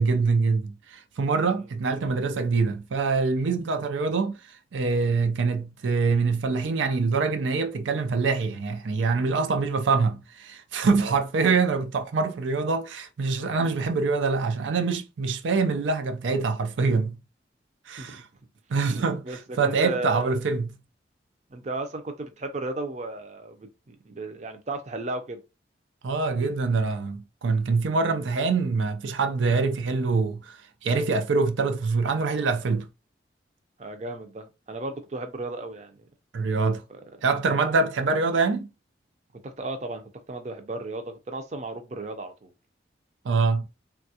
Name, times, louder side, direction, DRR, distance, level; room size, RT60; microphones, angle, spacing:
voice 1, 0.0-4.4 4.7-17.2 17.9-18.2 18.7-20.7 26.0-32.9 36.3-36.8 37.2-38.7 43.3-43.6, right 4 dB, 90° right, 0.4 m, -25 dB
voice 2, 19.2-20.4 21.5-25.4 33.8-36.0 36.9-37.0 37.5-37.7 39.4-42.5, right 2 dB, 40° right, 0.5 m, -35 dB
3.3 x 2.3 x 2.7 m
head